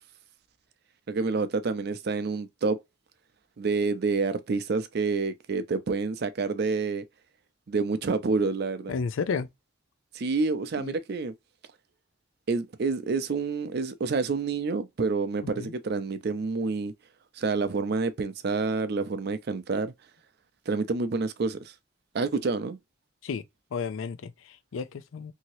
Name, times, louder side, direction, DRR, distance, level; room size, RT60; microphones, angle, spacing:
voice 1, 1.1-2.8 3.6-7.0 7.7-8.9 10.1-11.3 12.5-16.9 17.4-19.9 20.7-21.7 22.1-22.8, right 4 dB, 55° right, 0.4 m, -28 dB
voice 2, 8.9-9.5 10.8-10.9 15.4-15.7 23.2-23.4 23.7-25.3, left 5 dB, 80° left, 0.4 m, -32 dB
2.8 x 2.7 x 2.9 m
head